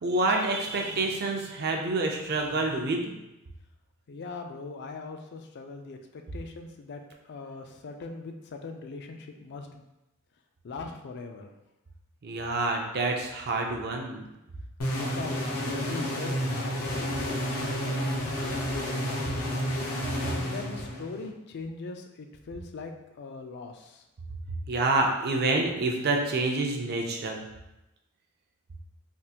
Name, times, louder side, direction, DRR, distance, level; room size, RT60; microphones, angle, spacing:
voice 1, 0.0-3.1 12.2-14.3 20.1-20.4 24.7-27.4, right 2 dB, 50° right, 2 dB, 0.5 m, -27 dB
voice 2, 4.1-9.8 10.6-11.5 14.9-18.0 18.5-19.8 20.3-24.1, left 3 dB, 50° left, 5 dB, 0.4 m, -41 dB
sound 1, 14.8-21.3, equal, 85° left, 0.7 m, -31 dB
3.5 x 2.4 x 2.8 m, 0.94 s
head